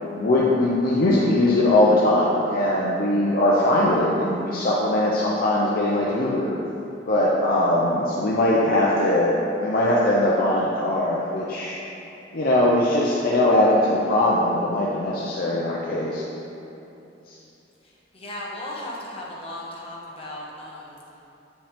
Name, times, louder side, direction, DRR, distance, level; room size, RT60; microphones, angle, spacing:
voice 1, 0.1-6.5 7.1-11.8 12.3-16.2, left 1 dB, 50° left, -5 dB, 0.6 m, -21 dB
voice 2, 18.1-21.0, left 1 dB, 30° left, -5 dB, 1.3 m, -36 dB
8.6 x 5.2 x 3.5 m, 2.9 s
head